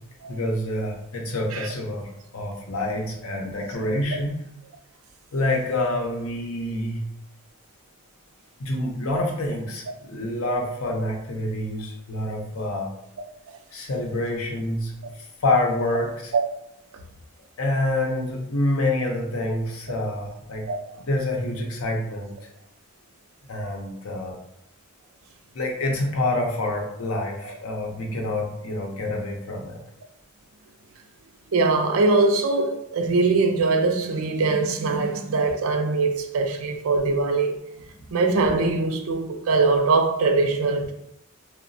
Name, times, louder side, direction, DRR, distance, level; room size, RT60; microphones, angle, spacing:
voice 1, 0.3-4.3 5.3-7.0 8.6-12.9 13.7-15.0 15.4-16.3 17.6-20.7 21.0-22.4 23.5-24.4 25.5-29.8, left 1 dB, 75° left, 0.6 m, -27 dB
voice 2, 31.5-37.6 38.1-40.9, right 3 dB, 70° right, 0.4 m, -22 dB
2.9 x 2.1 x 2.6 m
head